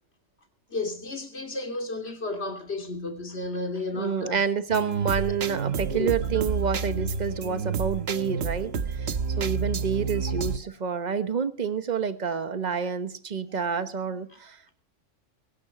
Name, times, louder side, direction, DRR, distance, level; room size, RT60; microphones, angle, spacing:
voice 1, 0.7-4.4 5.7-6.1, left 2 dB, 55° left, 3.2 m, -33 dB
voice 2, 4.0-14.7, right 6 dB, 35° right, 1.2 m, -28 dB
sound 1, 4.7-10.6, right 5 dB, 55° right, 1.2 m, -29 dB
23.5 x 11.5 x 4.2 m
omnidirectional pair, 1.3 m